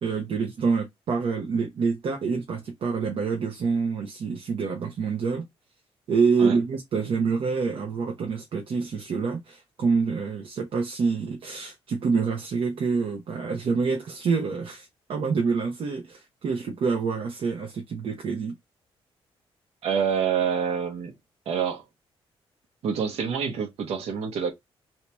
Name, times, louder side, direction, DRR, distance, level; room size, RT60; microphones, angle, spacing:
voice 1, 0.0-5.5 6.1-18.6, right 5 dB, 60° right, 0.8 m, -27 dB
voice 2, 19.8-21.1 21.5-21.8 22.8-24.5, right 7 dB, 80° right, 1.1 m, -27 dB
3.1 x 2.8 x 3.3 m
cardioid pair, 115°, 10 cm